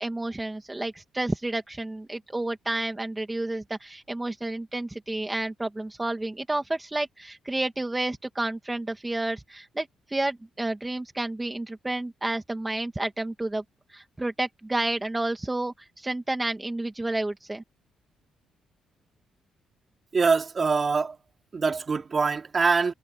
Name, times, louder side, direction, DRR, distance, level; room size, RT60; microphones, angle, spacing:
voice 1, 0.0-13.6 13.9-17.6, right 2 dB, 15° right, 2.4 m, -30 dB
voice 2, 20.1-21.2 21.5-22.9, right 4 dB, 35° right, 3.5 m, -24 dB
cardioid pair, 90°, 0 cm